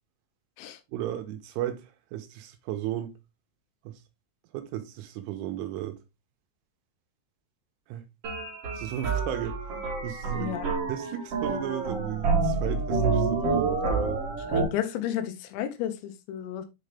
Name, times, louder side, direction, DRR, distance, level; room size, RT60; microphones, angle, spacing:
voice 1, 0.9-3.1 3.9-4.0 4.5-6.0 7.9-8.0 8.7-9.6 10.0-10.6 10.9-14.2, right 12 dB, 80° right, 3.1 m, -34 dB
sound 1, 8.2-14.6, right 4 dB, 60° right, 1.5 m, -28 dB
voice 2, 10.3-10.7 14.5-16.7, left 11 dB, 85° left, 3.6 m, -32 dB
8.1 x 3.8 x 3.4 m
omnidirectional pair, 5.9 m